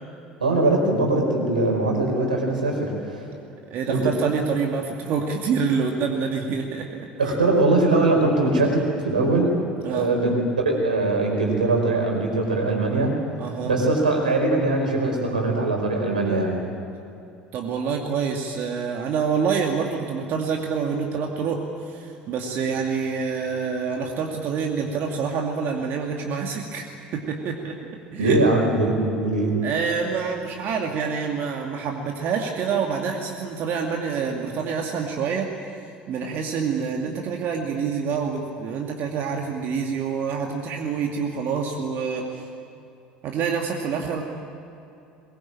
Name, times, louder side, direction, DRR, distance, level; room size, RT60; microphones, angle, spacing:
voice 1, 0.4-3.2 3.9-4.1 7.2-9.6 9.9-13.2 13.7-16.6 28.2-29.6, right 2 dB, 85° right, 1 dB, 4.7 m, -21 dB
voice 2, 3.7-7.3 9.8-10.1 13.4-13.7 17.5-27.8 28.1-28.4 29.6-35.5 36.1-42.5 43.2-44.2, right 6 dB, 50° right, 1 dB, 2.4 m, -27 dB
22.5 x 22.0 x 8.9 m, 2.7 s
figure-of-eight pair, 65°, 4 cm